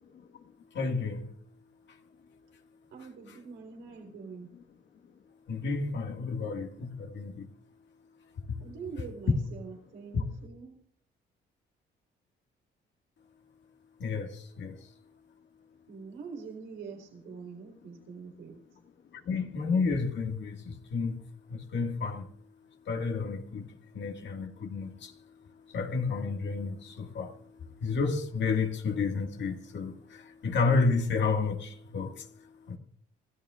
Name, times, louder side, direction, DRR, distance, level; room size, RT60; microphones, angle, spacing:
voice 1, 0.7-1.3 5.5-7.5 10.1-10.2 14.0-14.8 19.3-21.2 21.5-22.2 22.9-23.7 23.9-25.1 25.7-27.3 27.8-32.3 32.7-32.8, left 4 dB, 65° left, 2.0 m, -31 dB
voice 2, 2.9-4.5 8.6-10.7 15.9-18.6, right 5 dB, 85° right, 3.8 m, -44 dB
27.5 x 14.5 x 2.5 m
cardioid pair, 90°, 20 cm